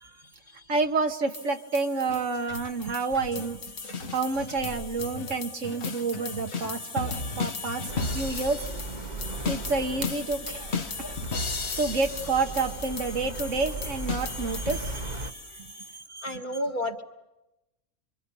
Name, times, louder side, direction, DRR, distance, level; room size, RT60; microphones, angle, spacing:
voice 1, 0.2-0.9 7.8-7.9 16.2-17.0, left 1 dB, 35° left, 4 dB, 1.8 m, -33 dB
voice 2, 0.7-3.6 4.1-7.9 8.1-8.7 9.5-11.2 11.8-16.3, right 4 dB, 60° right, 6 dB, 1.6 m, -29 dB
sound 1, 1.3-15.9, left 4 dB, 50° left, 1.4 m, -36 dB
sound 2, 2.1-8.1, left 1 dB, 80° left, 2.4 m, -42 dB
sound 3, 7.9-15.3, right 3 dB, 35° right, 1.2 m, -37 dB
27.0 x 25.0 x 8.4 m, 0.95 s
omnidirectional pair, 1.5 m